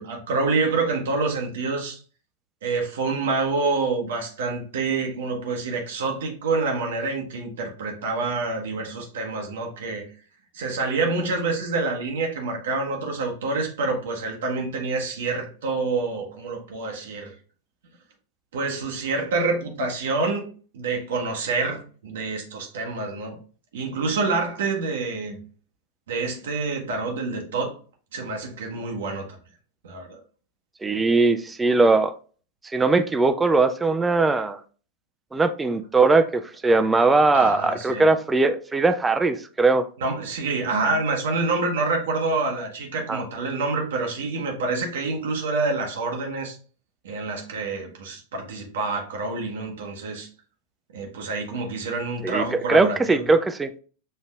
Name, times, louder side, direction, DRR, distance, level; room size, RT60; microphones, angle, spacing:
voice 1, 0.0-2.0 2.6-10.0 10.5-17.3 18.5-20.5 20.7-23.4 23.7-25.4 26.1-27.8 28.1-29.4 29.8-30.2 37.3-38.1 40.0-46.6 47.0-50.3 50.9-53.3, right 3 dB, 60° right, 0.8 m, -27 dB
voice 2, 30.8-32.1 32.7-34.6 35.3-39.8 43.1-43.2 52.2-53.7, right 3 dB, 10° right, 0.3 m, -20 dB
6.5 x 2.6 x 2.3 m
figure-of-eight pair, 90°, 0 cm